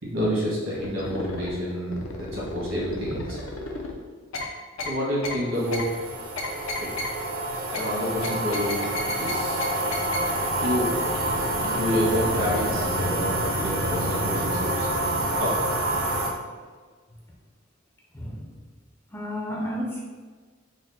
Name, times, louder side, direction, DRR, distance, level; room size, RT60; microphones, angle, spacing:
voice 1, 0.0-3.4 4.8-6.1 6.8-6.9 7.7-8.9 9.2-9.6 10.5-10.9 11.6-15.6, equal, 70° right, -6 dB, 1.5 m, -28 dB
sound 1, 0.8-1.5 1.9-3.9 4.3-4.5 4.8-4.9 5.2-5.4 5.7-5.8 6.4-7.1 7.7-7.8 8.2-9.3 9.6-9.7 9.9-10.2 10.6-10.7 11.2-11.3 11.6-11.7, left 3 dB, 80° left, 0.6 m, -33 dB
sound 2, 5.5-16.3, right 1 dB, 85° right, 0.7 m, -27 dB
voice 2, 18.1-18.5 19.1-20.0, equal, 10° left, -3 dB, 0.4 m, -31 dB
3.9 x 2.1 x 4.1 m, 1.5 s
head